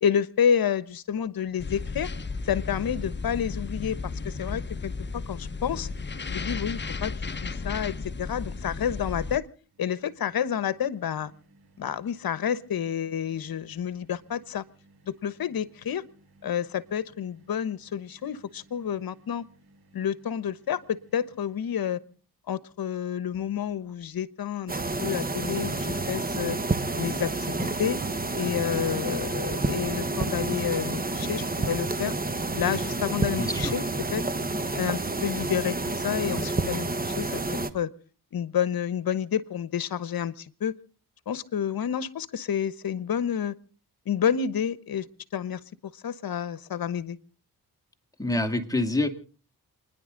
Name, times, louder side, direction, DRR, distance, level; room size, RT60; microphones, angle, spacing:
voice 1, 0.0-2.1 2.4-5.9 6.3-9.5 9.8-11.3 11.8-14.6 15.1-16.0 16.4-19.4 19.9-22.0 22.5-24.7 25.0-26.6 27.0-28.0 28.4-32.1 32.5-33.8 34.1-34.2 34.7-37.9 38.3-40.8 41.3-43.5 44.1-45.1 45.3-45.6 46.0-47.2, left 8 dB, 65° left, 16 dB, 1.1 m, -29 dB
sound 1, 1.6-9.4, left 4 dB, 30° left, 1.0 m, -34 dB
sound 2, 9.6-22.2, right 2 dB, 75° right, 3.5 m, -60 dB
sound 3, 24.7-37.7, right 2 dB, 20° right, 1.3 m, -29 dB
voice 2, 33.4-33.7 48.2-49.1, left 2 dB, 10° left, 4 dB, 2.5 m, -26 dB
29.0 x 10.5 x 3.9 m, 0.39 s
cardioid pair, 65°, 39 cm